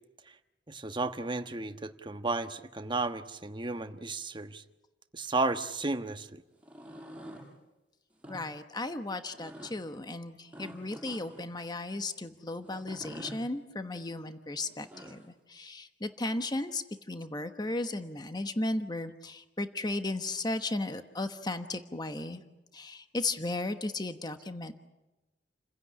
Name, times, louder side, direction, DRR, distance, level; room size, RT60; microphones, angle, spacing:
voice 1, 0.7-4.6 5.1-6.4, right 3 dB, 25° right, 8 dB, 1.3 m, -33 dB
sound 1, 6.5-7.5 8.1-8.4 9.3-9.7 10.5-11.5 12.7-13.4 14.6-15.3, equal, 5° right, 6.4 m, -47 dB
voice 2, 8.3-15.2 15.5-22.4 22.7-24.7, left 2 dB, 20° left, 8 dB, 1.2 m, -35 dB
29.5 x 16.0 x 9.8 m, 1.0 s
head